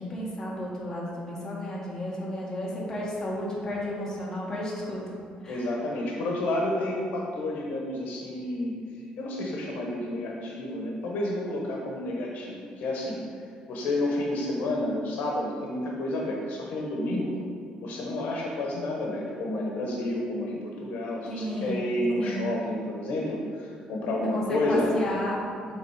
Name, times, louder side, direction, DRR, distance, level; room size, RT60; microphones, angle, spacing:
voice 1, 0.0-5.0 5.4-5.7 21.3-21.8 22.2-22.5 24.3-25.8, left 1 dB, 20° left, -6 dB, 1.5 m, -33 dB
voice 2, 5.5-8.7 9.2-13.2 13.7-17.4 17.8-24.9, left 1 dB, 75° left, -1 dB, 1.1 m, -30 dB
7.2 x 3.7 x 4.9 m, 2.1 s
cardioid pair, 145°, 3 cm